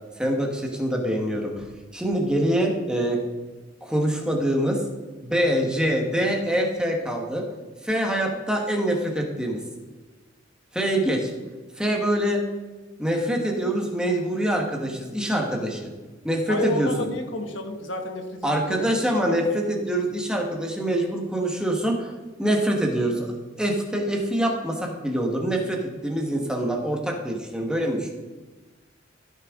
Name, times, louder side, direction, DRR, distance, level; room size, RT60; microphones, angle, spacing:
voice 1, 0.2-1.7 1.9-3.2 3.8-4.8 5.2-7.4 7.8-9.6 10.7-11.3 11.8-12.4 13.0-15.9 16.2-16.9 18.4-22.1 22.4-23.3 23.6-28.1, right 1 dB, 5° right, 1 dB, 1.4 m, -25 dB
voice 2, 16.5-18.9 19.3-20.0, left 2 dB, 80° left, 5 dB, 1.4 m, -31 dB
15.0 x 6.6 x 3.7 m, 1.2 s
head